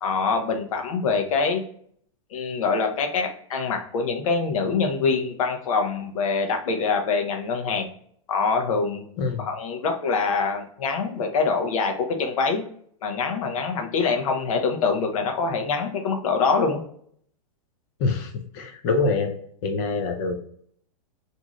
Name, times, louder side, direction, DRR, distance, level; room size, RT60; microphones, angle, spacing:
voice 1, 0.0-1.6 2.3-7.9 8.3-9.0 9.4-12.6 13.0-16.8, left 4 dB, 70° left, 3 dB, 0.7 m, -24 dB
voice 2, 9.2-9.5 18.0-19.3 19.6-20.4, left 3 dB, 30° left, 6 dB, 0.5 m, -25 dB
2.6 x 2.4 x 3.0 m, 0.62 s
supercardioid pair, 160°, 18 cm